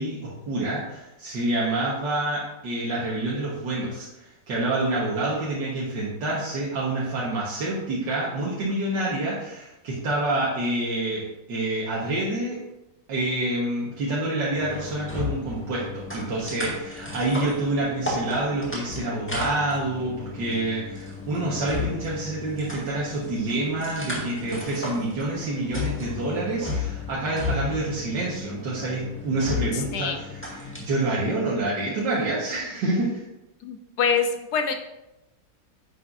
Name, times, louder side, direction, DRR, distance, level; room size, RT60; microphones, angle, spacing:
voice 1, 0.0-12.6 13.1-33.3, right 2 dB, 85° right, -6 dB, 2.0 m, -27 dB
sound 1, 14.5-30.8, left 3 dB, 5° left, 1.6 m, -34 dB
voice 2, 33.6-34.8, left 6 dB, 70° left, 6 dB, 1.4 m, -25 dB
9.6 x 7.7 x 2.6 m, 0.93 s
omnidirectional pair, 1.9 m